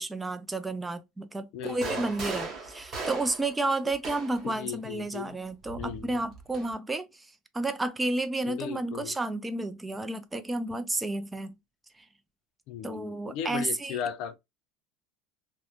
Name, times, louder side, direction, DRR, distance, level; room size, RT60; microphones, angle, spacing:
voice 1, 0.0-7.3 7.5-11.5 12.8-14.0, right 2 dB, 10° right, 0.3 m, -31 dB
voice 2, 1.5-2.1 4.4-5.4 5.8-6.3 8.4-9.2 12.7-14.4, left 9 dB, 55° left, 0.4 m, -37 dB
sound 1, 1.6-4.5 5.6-6.7, right 3 dB, 30° right, 0.8 m, -38 dB
2.9 x 2.0 x 2.3 m
cardioid pair, 150°, 0 cm